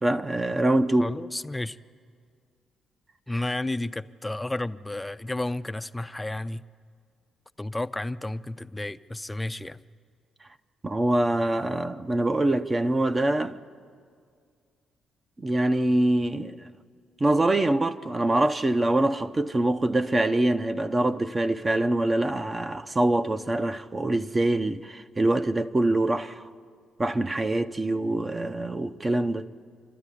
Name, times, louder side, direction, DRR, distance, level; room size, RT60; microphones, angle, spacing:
voice 1, 0.0-1.1 10.8-13.6 15.4-16.7 17.2-26.5 27.0-29.5, right 1 dB, 25° right, 0.7 m, -24 dB
voice 2, 1.0-1.8 3.3-6.6 7.6-9.8, left 2 dB, 10° left, 0.5 m, -32 dB
26.0 x 13.0 x 9.9 m
cardioid pair, 90°, 0 cm